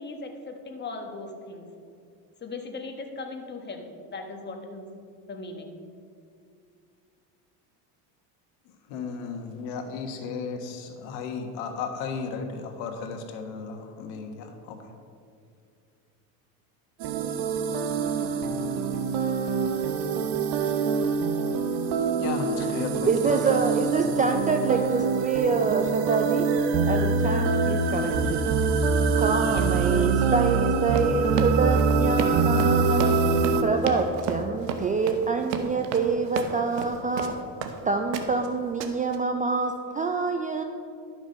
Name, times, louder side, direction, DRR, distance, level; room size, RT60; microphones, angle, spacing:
voice 1, 0.0-1.7 2.4-4.9 5.3-5.7 29.5-30.1, left 3 dB, 20° left, 3 dB, 1.4 m, -38 dB
voice 2, 8.9-14.8 22.2-23.4, left 5 dB, 75° left, 5 dB, 1.5 m, -34 dB
sound 1, 17.0-33.6, right 4 dB, 60° right, 1.0 m, -24 dB
voice 3, 23.1-26.5 26.9-28.4 29.2-33.1 33.6-37.3 37.8-40.6, right 4 dB, 20° right, 5 dB, 0.3 m, -26 dB
Run, 30.9-37.8 38.1-38.5 38.8-39.2, right 7 dB, 85° right, 1.0 m, -32 dB
11.5 x 6.2 x 5.3 m, 2.4 s
supercardioid pair, 105°, 48 cm